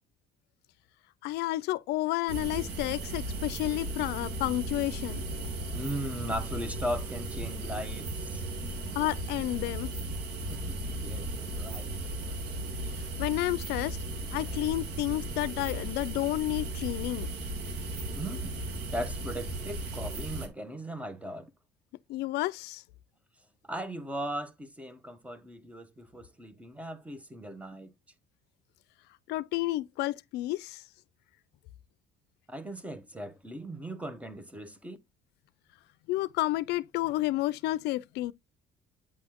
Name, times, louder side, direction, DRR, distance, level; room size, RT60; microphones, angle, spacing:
voice 1, 1.2-5.2 8.9-9.9 13.2-14.0 14.3-17.3 22.1-22.8 29.3-30.8 36.1-38.3, left 17 dB, 80° left, 0.4 m, -31 dB
sound 1, 2.3-20.5, right 1 dB, 85° right, 1.7 m, -36 dB
voice 2, 5.7-8.4 10.5-11.9 18.1-18.5 18.9-21.5 23.7-27.9 32.5-35.0, equal, 10° right, 0.9 m, -38 dB
8.6 x 4.2 x 2.9 m
cardioid pair, 110°, 17 cm